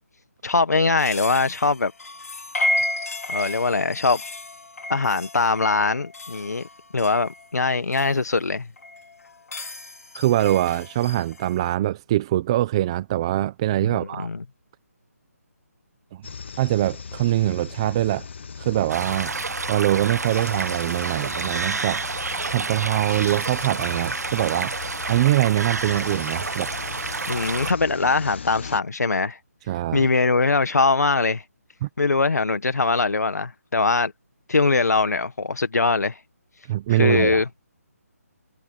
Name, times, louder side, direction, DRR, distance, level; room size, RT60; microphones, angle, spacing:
voice 1, 0.4-1.9 3.3-4.2 4.9-6.6 6.9-8.7 13.8-14.4 27.3-29.4 29.9-31.4 32.0-34.1 34.5-36.2 36.9-37.5, left 3 dB, 90° left, 1.5 m, -22 dB
sound 1, 1.0-8.1 8.8-11.7, left 1 dB, 70° left, 3.9 m, -32 dB
voice 2, 10.1-14.3 16.1-16.2 16.6-18.3 18.6-19.3 19.7-22.0 22.5-24.7 25.1-26.7 29.7-30.1 31.8-31.9 36.7-37.4, right 14 dB, 20° right, 0.9 m, -23 dB
sound 2, 16.2-28.8, left 5 dB, 45° left, 1.2 m, -38 dB
sound 3, 18.9-27.7, right 4 dB, 85° right, 1.4 m, -29 dB
hypercardioid pair, 170°, 9 cm